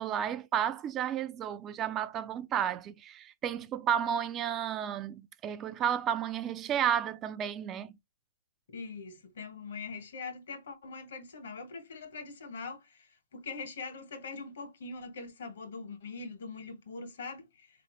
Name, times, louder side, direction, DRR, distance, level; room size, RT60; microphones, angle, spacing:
voice 1, 0.0-8.0, right 9 dB, 25° right, 0.3 m, -32 dB
voice 2, 8.7-17.7, left 4 dB, 75° left, 1.5 m, -42 dB
3.8 x 3.0 x 3.1 m
hypercardioid pair, 140°, 0 cm